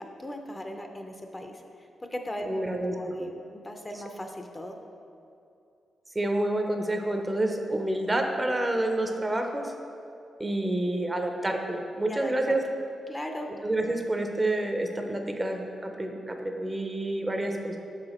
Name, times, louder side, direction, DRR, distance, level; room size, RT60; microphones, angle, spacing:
voice 1, 0.0-4.8 12.1-12.6 13.1-13.5, equal, 20° left, 4 dB, 0.6 m, -38 dB
voice 2, 2.5-3.3 6.1-9.7 10.4-12.6 13.6-17.8, right 1 dB, 20° right, 4 dB, 0.6 m, -28 dB
5.7 x 4.9 x 4.2 m, 2.6 s
cardioid pair, 65°, 0 cm